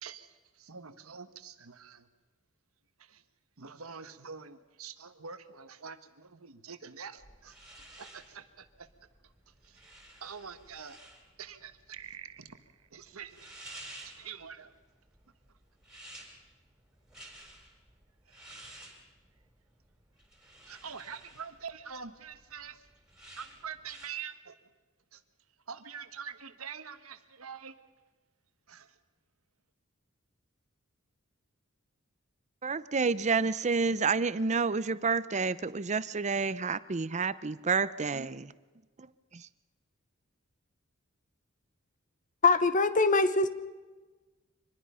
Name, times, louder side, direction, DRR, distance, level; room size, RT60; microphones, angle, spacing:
voice 1, 0.0-2.1 3.0-3.2 3.6-8.9 9.6-9.8 10.2-11.0 11.4-12.6 12.9-13.5 14.0-14.7 18.3-18.7 20.7-22.8 23.4-24.6 25.1-25.2 25.7-27.8 28.7-28.9, right 6 dB, 80° right, 10 dB, 1.3 m, -45 dB
sound 1, 7.2-24.1, right 1 dB, 5° right, 4.2 m, -53 dB
voice 2, 32.6-38.5 39.3-39.5, right 4 dB, 35° right, 16 dB, 0.6 m, -29 dB
voice 3, 42.4-43.5, left 3 dB, 40° left, 12 dB, 1.0 m, -23 dB
25.0 x 20.5 x 5.6 m, 1.2 s
head